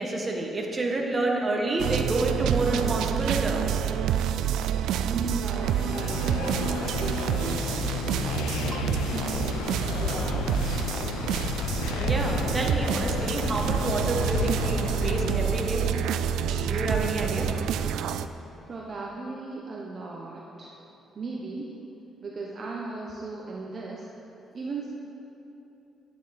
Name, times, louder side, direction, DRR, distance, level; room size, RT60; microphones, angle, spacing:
voice 1, 0.0-3.8 12.0-15.9 16.7-17.5, right 2 dB, 30° right, 0 dB, 1.5 m, -28 dB
sound 1, 1.8-18.3, right 9 dB, 85° right, 0.3 m, -28 dB
voice 2, 5.0-8.6 9.0-10.8 18.7-20.7 21.1-21.8 22.2-24.2 24.5-24.9, right 3 dB, 45° right, -2 dB, 1.0 m, -37 dB
sound 2, 5.4-16.2, left 6 dB, 90° left, 0.5 m, -32 dB
11.0 x 8.9 x 4.3 m, 3.0 s
cardioid pair, 90°, 0 cm